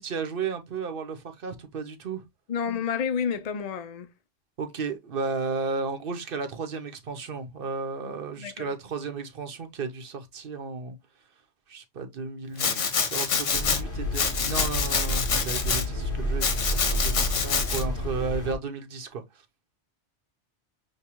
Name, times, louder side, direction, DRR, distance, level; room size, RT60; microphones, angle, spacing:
voice 1, 0.0-2.2 4.6-11.0 11.7-19.2, right 4 dB, 55° right, 0.9 m, -34 dB
voice 2, 2.5-4.1 8.4-8.7, left 7 dB, 70° left, 0.3 m, -30 dB
Domestic sounds home sounds, 12.6-13.8 14.1-15.8 16.4-17.8, left 6 dB, 90° left, 1.3 m, -26 dB
sound 1, 13.5-18.6, left 1 dB, 50° left, 1.4 m, -30 dB
6.5 x 2.3 x 2.9 m
omnidirectional pair, 1.2 m